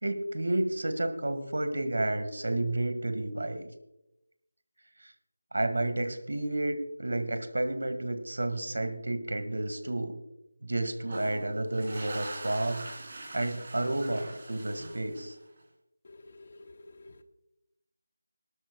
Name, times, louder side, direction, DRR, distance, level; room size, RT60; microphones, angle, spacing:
voice 1, 0.0-3.7 5.0-5.1 5.5-10.2 10.6-12.9 13.3-15.4, right 1 dB, 80° right, 9 dB, 1.8 m, -31 dB
sound 1, 11.0-15.6, right 2 dB, 30° right, 3.3 m, -43 dB
voice 2, 16.0-17.2, left 2 dB, 35° left, 9 dB, 0.9 m, -51 dB
24.5 x 12.0 x 2.3 m, 0.87 s
figure-of-eight pair, 180°, 0 cm